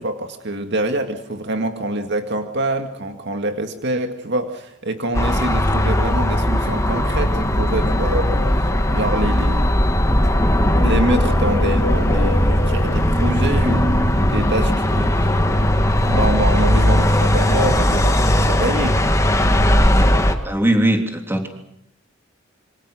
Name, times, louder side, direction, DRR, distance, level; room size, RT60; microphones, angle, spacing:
voice 1, 0.0-9.7 10.8-15.3 16.1-19.0, right 1 dB, 60° right, 6 dB, 2.1 m, -25 dB
sound 1, 5.1-20.4, left 1 dB, 15° left, 1.8 m, -18 dB
sound 2, 7.6-9.2 10.0-13.9, left 2 dB, 45° left, 1.7 m, -31 dB
voice 2, 20.4-21.5, right 1 dB, 10° right, 4 dB, 3.2 m, -19 dB
26.5 x 25.0 x 6.3 m, 0.77 s
head